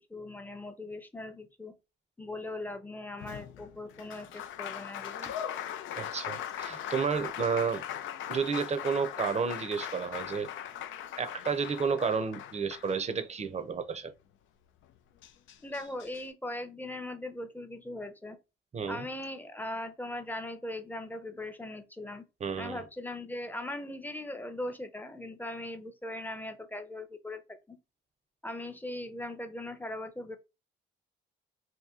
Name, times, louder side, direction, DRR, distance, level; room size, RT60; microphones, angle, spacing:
voice 1, 0.1-1.7 2.2-5.3 15.6-18.4 18.9-22.2 22.6-27.8 28.4-30.4, left 1 dB, 10° left, 0.6 m, -39 dB
Applause, 3.2-13.5 14.8-14.9 15.2-16.2, left 10 dB, 80° left, 0.5 m, -40 dB
voice 2, 6.0-7.8 8.3-10.5 11.2-14.1 18.7-19.0 22.4-22.8, right 5 dB, 35° right, 0.6 m, -31 dB
2.9 x 2.7 x 3.6 m
cardioid pair, 90°, 20 cm